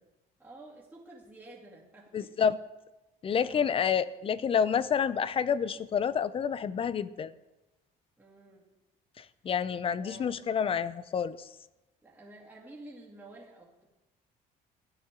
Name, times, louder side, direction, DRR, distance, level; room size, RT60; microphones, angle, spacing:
voice 1, 0.4-2.4 3.4-3.8 8.2-8.6 9.9-10.3 12.0-13.9, right 2 dB, 10° right, -7 dB, 2.4 m, -50 dB
voice 2, 2.1-2.6 3.2-7.3 9.2-11.4, left 7 dB, 35° left, 17 dB, 0.5 m, -29 dB
13.5 x 8.8 x 3.7 m, 1.0 s
cardioid pair, 110°, 17 cm